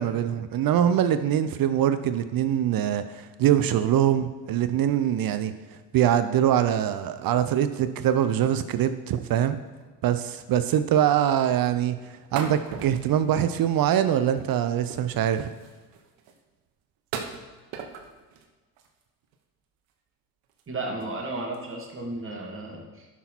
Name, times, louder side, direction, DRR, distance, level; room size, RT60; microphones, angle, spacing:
voice 1, 0.0-5.5 5.9-9.6 10.0-15.5, right 10 dB, 50° right, 11 dB, 0.7 m, -23 dB
sound 1, 9.6-9.9 10.2-10.3 10.5-10.8 11.1-11.2 12.3-13.9 14.2-16.4 17.1-18.5 18.8-19.4 19.9-20.0 20.4-20.7 21.0-21.2 21.5-21.7, right 6 dB, 70° right, 1.3 m, -40 dB
voice 2, 20.7-23.2, right 2 dB, 25° right, -1 dB, 2.4 m, -34 dB
11.0 x 6.0 x 4.2 m, 1.3 s
supercardioid pair, 80°, 46 cm